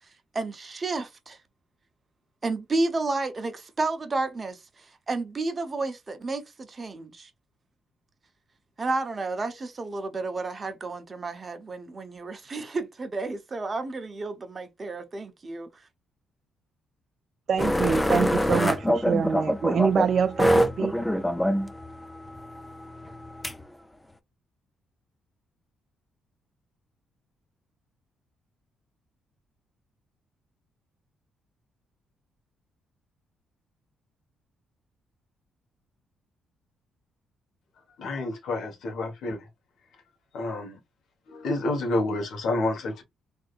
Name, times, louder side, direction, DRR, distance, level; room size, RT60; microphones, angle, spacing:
voice 1, 0.3-1.4 2.4-7.3 8.8-15.8, right 3 dB, 30° right, 0.8 m, -31 dB
voice 2, 17.5-21.0, right 7 dB, 55° right, 0.4 m, -25 dB
sound 1, 17.6-23.6, equal, 10° left, 0.5 m, -25 dB
voice 3, 38.0-39.5 40.3-40.8 41.3-43.0, left 2 dB, 75° left, 1.3 m, -29 dB
3.5 x 2.7 x 2.4 m
cardioid pair, 90°, 0 cm